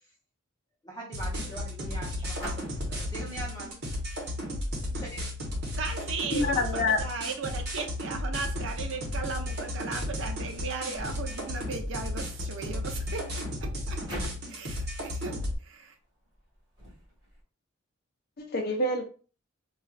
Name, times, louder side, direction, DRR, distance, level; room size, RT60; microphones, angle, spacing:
voice 1, 0.8-3.8 4.9-5.3, right 1 dB, 20° left, -6 dB, 0.8 m, -42 dB
sound 1, 1.1-15.5, left 1 dB, 50° right, 1.0 m, -34 dB
sound 2, 1.2-17.4, equal, 20° right, 1.7 m, -48 dB
voice 2, 5.8-15.9, right 4 dB, 65° right, 4 dB, 0.6 m, -37 dB
voice 3, 6.3-7.0 18.4-19.0, left 2 dB, 50° left, 4 dB, 0.6 m, -26 dB
4.3 x 2.4 x 2.4 m, 0.38 s
head